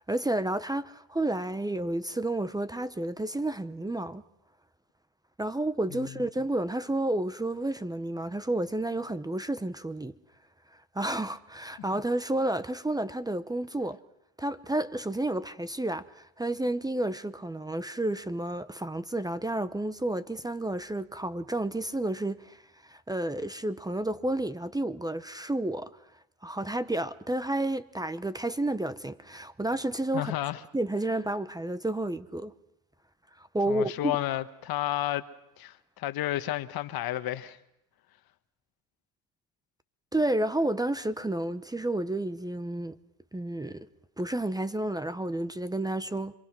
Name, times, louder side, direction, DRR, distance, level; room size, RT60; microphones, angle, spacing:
voice 1, 0.0-4.2 5.4-10.1 10.9-14.0 14.4-25.9 26.4-30.3 30.7-32.5 33.4-34.1 40.1-43.0 43.3-43.9 44.2-46.3, right 1 dB, 10° right, 0.9 m, -31 dB
voice 2, 30.1-30.6 33.7-35.3 35.6-37.6, left 14 dB, 60° left, 1.4 m, -31 dB
27.0 x 23.0 x 6.1 m
supercardioid pair, 90°, 42 cm